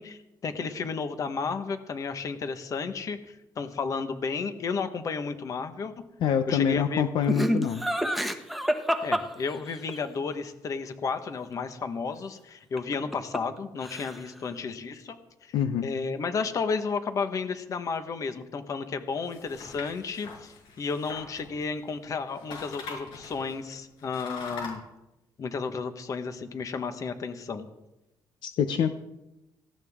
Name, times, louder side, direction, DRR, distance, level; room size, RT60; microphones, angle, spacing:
voice 1, 0.0-6.0 6.5-7.0 9.0-15.2 15.4-15.6 15.8-24.8 25.4-27.7, left 5 dB, 45° left, 9 dB, 1.4 m, -32 dB
voice 2, 6.2-7.8 15.5-15.9 28.4-28.9, left 8 dB, 70° left, 8 dB, 0.8 m, -25 dB
Laughter, 7.3-10.0 12.8-13.6 13.8-14.4, equal, ahead, 1.1 m, -28 dB
sound 1, 19.2-22.0 22.3-24.7, left 4 dB, 90° left, 6.1 m, -42 dB
18.0 x 16.0 x 3.7 m, 0.95 s
cardioid pair, 130°, 8 cm